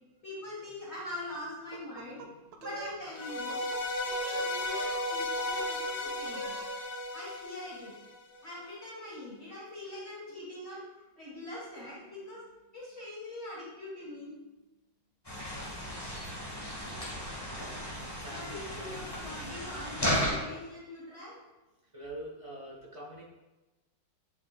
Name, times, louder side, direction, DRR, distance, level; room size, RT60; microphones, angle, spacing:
voice 1, 0.2-2.3 2.6-3.6 4.0-6.6 7.1-8.0 8.4-10.8 11.2-12.4 12.7-14.3 18.3-21.4, left 1 dB, 40° left, -8 dB, 1.8 m, -43 dB
sound 1, 1.7-3.0 3.3-3.8 4.1-5.0 5.4-6.0 6.2-6.7, right 5 dB, 70° right, 1.1 m, -45 dB
sound 2, 3.1-8.4, left 1 dB, 75° left, 1.5 m, -34 dB
sound 3, 15.2-20.3, equal, 15° left, 1.2 m, -35 dB
voice 2, 18.2-19.0 20.2-20.6 21.9-23.2, equal, 25° right, -5 dB, 0.8 m, -44 dB
8.3 x 4.9 x 2.4 m, 1.1 s
omnidirectional pair, 1.9 m